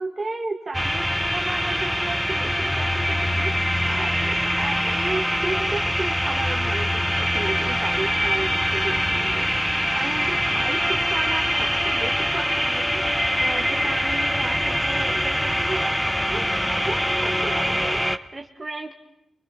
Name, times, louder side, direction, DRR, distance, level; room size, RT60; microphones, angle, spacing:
voice 1, 0.0-16.0 16.2-18.9, right 3 dB, 30° right, 2 dB, 2.0 m, -34 dB
sound 1, 0.7-18.2, equal, 5° left, 1.1 m, -23 dB
28.5 x 25.0 x 6.2 m, 0.87 s
cardioid pair, 75°, 0 cm